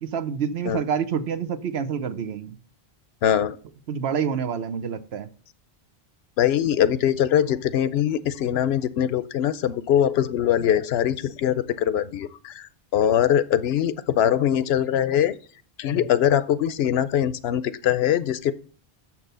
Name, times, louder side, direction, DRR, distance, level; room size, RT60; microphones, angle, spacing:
voice 1, 0.0-2.6 3.9-5.3 15.9-16.1, right 7 dB, 90° right, 12 dB, 1.1 m, -28 dB
voice 2, 3.2-3.6 6.4-15.4 15.8-18.5, left 10 dB, 85° left, 15 dB, 0.9 m, -22 dB
6.9 x 6.0 x 6.7 m, 0.44 s
omnidirectional pair, 1.0 m